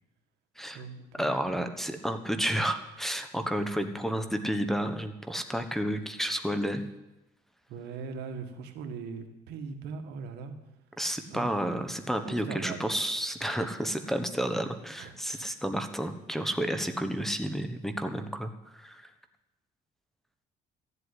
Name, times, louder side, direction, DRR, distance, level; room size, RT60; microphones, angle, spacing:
voice 1, 0.6-1.6 7.7-10.5 11.3-11.5 12.2-13.0 14.0-14.1 15.0-15.5, right 5 dB, 80° right, 6 dB, 1.8 m, -40 dB
voice 2, 1.2-6.8 11.0-19.1, equal, ahead, 6 dB, 1.2 m, -31 dB
13.5 x 8.1 x 9.9 m, 0.98 s
cardioid pair, 110°, 17 cm